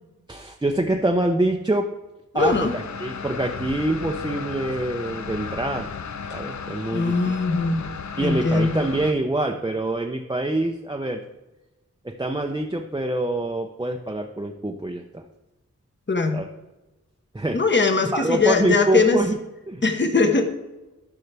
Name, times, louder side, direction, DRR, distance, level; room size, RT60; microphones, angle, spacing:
voice 1, 0.3-1.9 2.3-5.9 6.3-7.4 8.2-11.2 12.0-15.2 16.3-16.4 17.3-17.6 18.0-19.4 19.7-19.8, right 1 dB, 15° right, 1 dB, 0.6 m, -25 dB
voice 2, 2.3-2.7 6.9-7.8 8.2-8.7 16.1-16.4 17.5-19.2 19.8-20.4, left 3 dB, 40° left, 5 dB, 1.0 m, -20 dB
sound 1, 2.4-9.1, left 6 dB, 70° left, 0.6 m, -34 dB
13.5 x 5.7 x 3.4 m, 1.1 s
wide cardioid pair, 85°, 30 cm